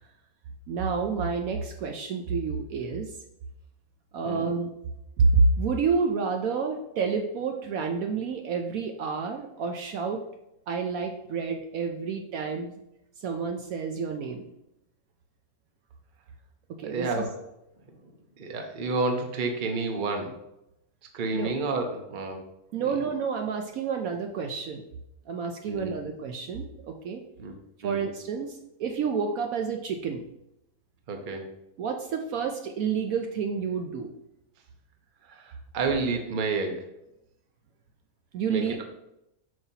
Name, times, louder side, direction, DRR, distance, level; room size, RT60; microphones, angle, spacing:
voice 1, 0.7-3.2 4.1-4.7 5.2-10.2 10.7-12.8 13.2-14.4 16.8-17.3 21.3-21.5 22.7-24.8 25.3-27.2 27.8-30.2 31.8-34.1 38.3-38.8, right 5 dB, 70° right, 3 dB, 1.0 m, -29 dB
voice 2, 16.8-17.4 18.4-20.3 21.1-22.4 22.8-23.0 25.7-26.0 27.4-27.5 27.8-28.1 31.1-31.5 35.3-36.9 38.5-38.8, right 3 dB, 40° right, 4 dB, 0.8 m, -30 dB
7.8 x 5.7 x 2.8 m, 0.85 s
omnidirectional pair, 1.7 m